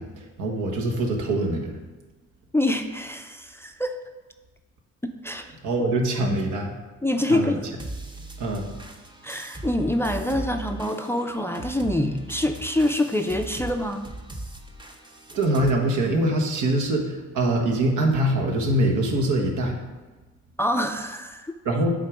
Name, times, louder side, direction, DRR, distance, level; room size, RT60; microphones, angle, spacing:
voice 1, 0.0-1.8 5.6-6.7 7.3-7.6 8.4-8.7 15.3-19.8 21.6-21.9, right 1 dB, 80° right, 1 dB, 1.3 m, -24 dB
voice 2, 2.5-3.9 5.2-5.5 6.2-6.4 7.0-7.6 9.2-14.1 20.6-21.5, left 1 dB, 10° left, 5 dB, 0.4 m, -25 dB
sound 1, 7.8-15.7, right 2 dB, 15° right, 0.8 m, -38 dB
8.1 x 3.8 x 4.8 m, 1.2 s
cardioid pair, 90°, 30 cm